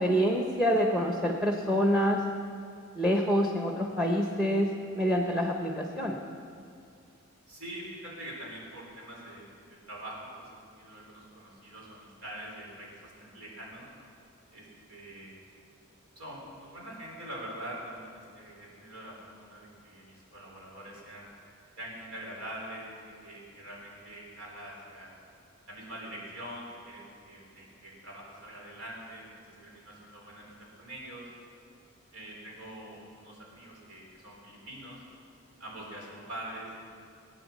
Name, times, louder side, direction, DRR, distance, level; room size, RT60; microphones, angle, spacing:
voice 1, 0.0-2.2 3.0-6.2, equal, 5° right, 1 dB, 0.9 m, -26 dB
voice 2, 7.5-13.9 14.5-15.3 16.2-21.3 21.8-25.1 25.7-30.5 30.8-31.3 32.1-35.0 35.6-36.8, right 1 dB, 90° right, -3 dB, 4.1 m, -44 dB
17.5 x 8.9 x 7.2 m, 2.3 s
head